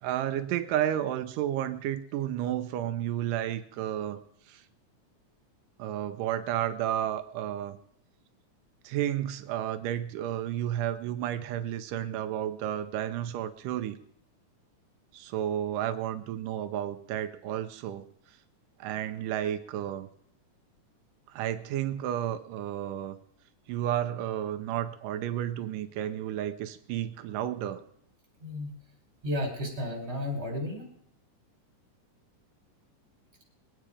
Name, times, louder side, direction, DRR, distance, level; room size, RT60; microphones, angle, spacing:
voice 1, 0.0-4.2 4.5-4.6 5.8-7.8 8.8-14.0 15.1-18.4 18.8-20.1 21.3-23.2 23.7-27.8, right 11 dB, 85° right, 9 dB, 2.3 m, -32 dB
voice 2, 29.2-30.9, left 1 dB, 20° right, 0 dB, 4.0 m, -33 dB
21.5 x 9.1 x 5.0 m, 0.69 s
omnidirectional pair, 3.7 m